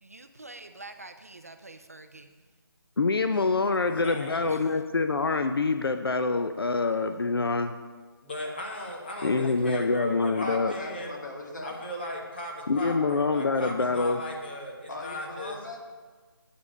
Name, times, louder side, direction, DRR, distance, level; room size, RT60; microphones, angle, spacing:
voice 1, 0.0-2.4 4.5-4.7 7.0-7.1, right 2 dB, 40° right, 0.4 m, -46 dB
voice 2, 3.0-7.8 9.2-10.7 12.7-14.2, left 3 dB, 70° left, 0.5 m, -26 dB
voice 3, 3.8-4.6 8.2-11.1 11.6-15.6, left 1 dB, 25° left, 1.3 m, -37 dB
voice 4, 10.4-11.8 14.9-15.8, left 2 dB, 50° left, 1.7 m, -39 dB
8.2 x 5.1 x 6.4 m
figure-of-eight pair, 175°, 13 cm